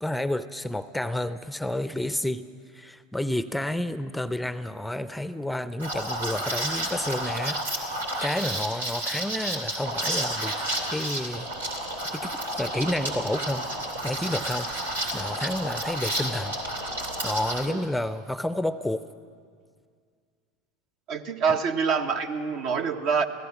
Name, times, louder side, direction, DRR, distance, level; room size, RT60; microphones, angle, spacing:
voice 1, 0.0-2.4 2.7-8.0 8.2-10.5 10.9-11.5 12.2-13.7 14.0-16.6 17.2-19.0, left 1 dB, 5° left, 13 dB, 0.6 m, -30 dB
Liquid, 5.8-17.7, right 1 dB, 90° right, 2.8 m, -31 dB
voice 2, 21.1-23.3, right 6 dB, 55° right, 6 dB, 1.4 m, -26 dB
28.5 x 17.0 x 6.0 m, 2.1 s
hypercardioid pair, 80°, 0 cm